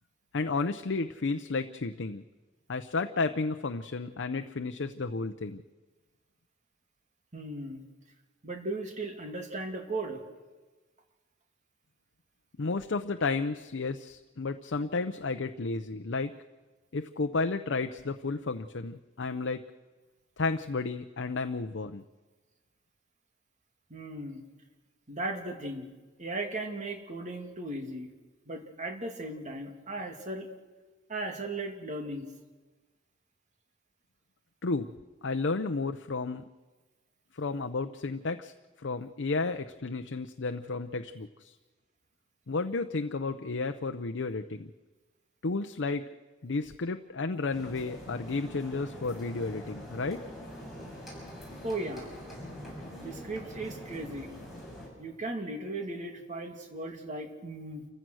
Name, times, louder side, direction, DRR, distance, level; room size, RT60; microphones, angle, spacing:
voice 1, 0.3-2.2 2.7-5.6 12.6-16.4 16.9-19.6 20.4-22.0 34.6-34.9 35.2-36.4 37.3-41.6 42.5-44.7 45.4-46.1 46.4-50.2, left 3 dB, 70° left, 7 dB, 0.7 m, -32 dB
voice 2, 7.3-7.8 8.4-10.2 23.9-24.4 25.1-25.9 26.2-28.1 28.5-30.5 31.1-32.3 51.6-52.1 53.0-54.3 55.0-57.9, right 2 dB, 40° right, 3 dB, 2.5 m, -37 dB
sound 1, 47.5-54.9, equal, ahead, 7.4 m, -44 dB
28.5 x 15.5 x 6.3 m, 1.3 s
head